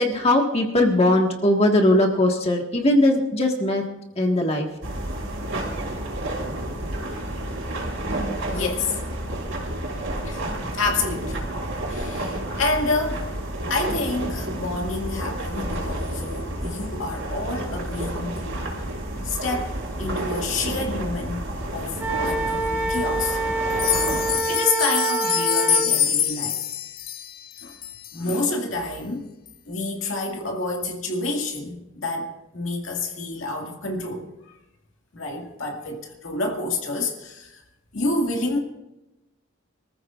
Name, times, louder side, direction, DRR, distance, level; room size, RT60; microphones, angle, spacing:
voice 1, 0.0-3.9 4.2-4.7, left 1 dB, 30° left, 1 dB, 1.7 m, -20 dB
sound 1, 4.8-24.4, right 1 dB, 90° right, 4.3 m, -30 dB
voice 2, 8.5-9.0 10.2-10.4 10.8-11.4 11.9-13.3 13.7-18.7 19.2-21.5 21.7-22.0 22.2-23.4 24.5-26.6 27.6-27.8 28.1-29.3 29.7-34.3 35.1-37.6 37.9-38.6, left 2 dB, 75° left, 1 dB, 2.1 m, -28 dB
Wind instrument woodwind instrument, 22.0-25.9, right 3 dB, 10° right, 2.6 m, -26 dB
sound 2, 23.7-28.4 28.9-29.0 29.5-29.6 30.1-30.2, left 8 dB, 50° left, 0.8 m, -25 dB
26.0 x 14.5 x 2.5 m, 0.97 s
head